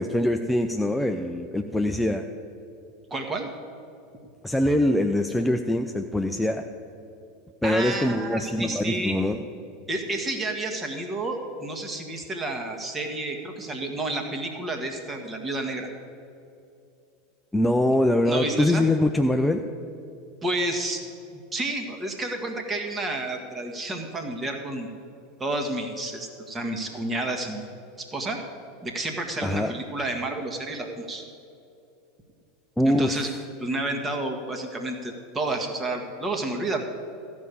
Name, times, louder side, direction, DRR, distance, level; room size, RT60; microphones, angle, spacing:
voice 1, 0.0-2.3 4.4-6.6 7.6-9.4 17.5-19.6 29.4-29.7 32.8-33.4, left 1 dB, 5° left, 5 dB, 0.5 m, -23 dB
voice 2, 3.1-3.5 7.6-9.2 9.9-15.9 18.3-18.8 20.4-21.0 21.3-24.9 25.4-27.7 28.0-28.4 28.8-31.2 32.8-33.3 33.6-36.9, right 2 dB, 20° right, 4 dB, 1.7 m, -30 dB
14.0 x 5.4 x 8.3 m, 2.6 s
figure-of-eight pair, 80°, 0 cm